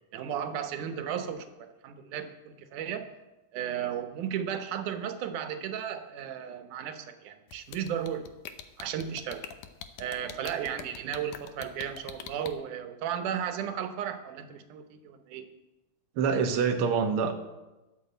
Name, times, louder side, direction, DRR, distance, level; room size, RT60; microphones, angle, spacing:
voice 1, 0.1-3.0 3.5-8.3 8.8-9.5 10.0-15.5, right 9 dB, 90° right, 8 dB, 2.5 m, -35 dB
sound 1, 7.5-12.5, left 10 dB, 85° left, 2.3 m, -42 dB
voice 2, 16.2-17.3, right 6 dB, 55° right, 4 dB, 1.8 m, -25 dB
13.0 x 6.8 x 7.9 m, 1.0 s
omnidirectional pair, 3.5 m